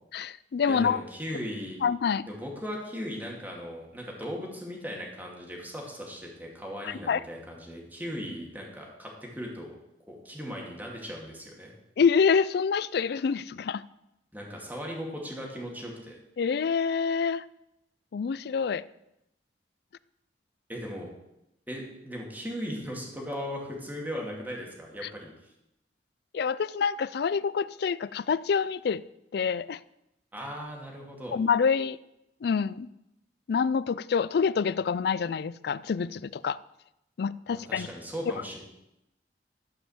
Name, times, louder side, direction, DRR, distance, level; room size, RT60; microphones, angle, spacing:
voice 1, 0.1-1.0 1.8-2.2 6.8-7.2 12.0-13.8 16.4-17.4 18.1-18.8 26.3-29.0 29.3-29.8 31.3-32.0 32.4-32.9 33.5-36.6 37.2-37.9, left 6 dB, 65° left, 18 dB, 0.4 m, -26 dB
voice 2, 0.7-1.8 2.3-9.7 10.1-11.7 14.3-16.2 20.7-21.1 21.7-25.3 30.3-31.4 37.5-38.6, equal, 10° right, -1 dB, 2.3 m, -38 dB
13.0 x 5.4 x 7.2 m, 0.86 s
head